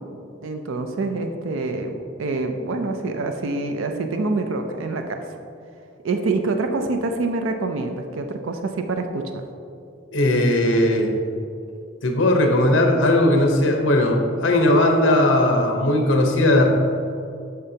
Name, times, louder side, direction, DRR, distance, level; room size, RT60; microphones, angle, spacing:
voice 1, 0.4-5.2 6.0-9.4, right 3 dB, 85° right, 5 dB, 0.5 m, -26 dB
voice 2, 10.1-11.1 12.0-16.7, left 1 dB, 75° left, 3 dB, 0.9 m, -18 dB
8.4 x 5.7 x 2.8 m, 2.5 s
head